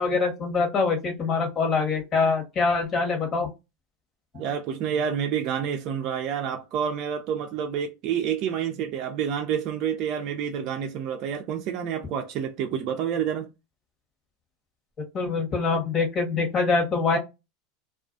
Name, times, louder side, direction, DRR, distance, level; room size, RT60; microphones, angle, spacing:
voice 1, 0.0-3.5 15.1-17.2, left 4 dB, 35° left, 1.1 m, -24 dB
voice 2, 4.3-13.5, right 8 dB, 55° right, 0.4 m, -28 dB
2.3 x 2.3 x 2.4 m
hypercardioid pair, 105°, 0 cm